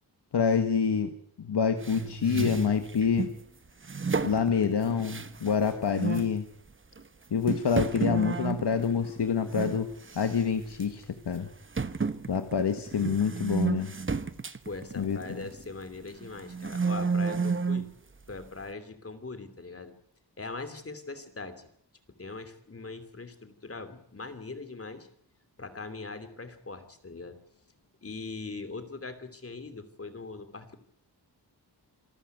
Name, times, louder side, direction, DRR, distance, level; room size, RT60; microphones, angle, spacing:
voice 1, 0.3-3.3 4.2-6.5 7.3-9.9 10.1-11.5 12.3-13.9 15.0-15.2, left 6 dB, 90° left, 7 dB, 1.6 m, -27 dB
sound 1, 1.8-3.4 3.8-5.6 5.9-6.4 7.0-7.1 7.5-9.8 10.1-10.4 10.8-10.9 11.8-15.8 16.2-17.9, right 5 dB, 30° right, 1.0 m, -31 dB
voice 2, 14.6-17.9 18.3-19.9 20.4-21.7 22.2-25.1 25.6-27.4 28.0-30.8, left 3 dB, 35° left, 9 dB, 3.0 m, -41 dB
27.0 x 13.5 x 9.2 m, 0.69 s
wide cardioid pair, 130°, 40 cm